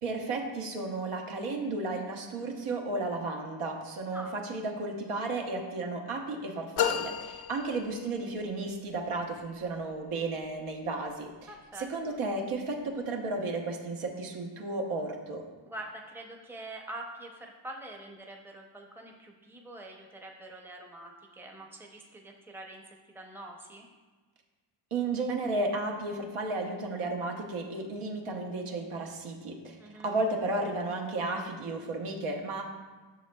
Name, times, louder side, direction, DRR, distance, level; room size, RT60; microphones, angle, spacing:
voice 1, 0.0-11.5 11.8-15.4 24.9-29.8 30.0-32.6, right 2 dB, 80° right, 2 dB, 1.1 m, -33 dB
sound 1, 6.8-8.4, left 9 dB, 75° left, 0.6 m, -32 dB
voice 2, 11.5-12.2 15.6-23.9 29.8-30.1, right 1 dB, 5° right, 1 dB, 0.6 m, -45 dB
9.1 x 6.3 x 2.3 m, 1.3 s
wide cardioid pair, 120°, 49 cm